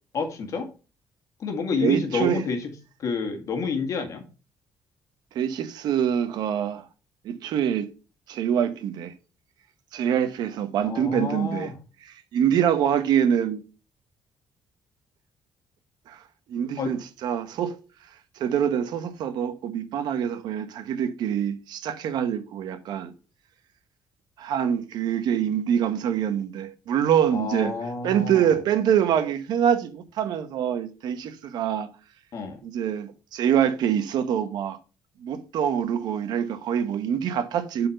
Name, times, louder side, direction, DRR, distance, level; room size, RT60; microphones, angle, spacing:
voice 1, 0.1-0.7 1.4-2.7 3.0-4.2 10.8-11.7 16.8-16.9 27.3-28.6 32.3-32.6, left 5 dB, 45° left, 1.8 m, -29 dB
voice 2, 1.8-2.4 5.3-6.8 7.2-7.9 8.3-9.1 9.9-11.7 12.0-13.6 16.1-16.2 16.5-17.8 18.4-23.1 24.4-27.7 28.0-31.9 32.6-34.8 35.2-37.9, right 9 dB, 70° right, 0.9 m, -25 dB
7.8 x 4.3 x 5.3 m
cardioid pair, 160°, 7 cm